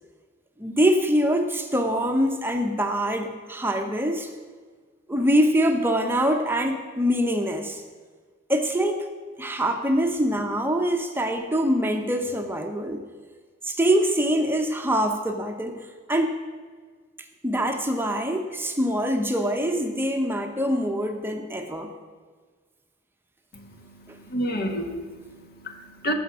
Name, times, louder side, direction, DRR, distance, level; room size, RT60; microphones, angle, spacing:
voice 1, 0.6-4.3 5.1-7.8 8.5-9.1 9.4-13.0 13.6-16.3 17.4-21.9, equal, 10° right, 4 dB, 0.8 m, -24 dB
voice 2, 23.5-26.1, equal, 50° left, 4 dB, 1.5 m, -31 dB
18.5 x 7.1 x 6.1 m, 1.5 s
head